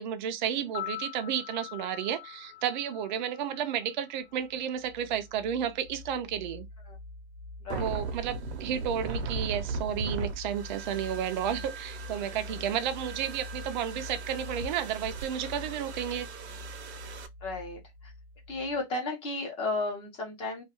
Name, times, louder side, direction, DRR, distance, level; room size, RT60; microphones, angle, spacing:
voice 1, 0.0-6.7 7.8-16.3, right 9 dB, 45° right, 0.4 m, -32 dB
sound 1, 0.6-4.8 5.0-5.1, left 14 dB, 75° left, 0.9 m, -43 dB
sound 2, 4.3-18.8, left 2 dB, 50° left, 0.4 m, -45 dB
voice 2, 7.6-8.0 17.4-18.1 18.5-20.6, left 3 dB, 15° left, 0.7 m, -34 dB
sound 3, 7.7-17.3, right 4 dB, 85° right, 0.7 m, -38 dB
2.3 x 2.3 x 2.8 m
supercardioid pair, 160°, 32 cm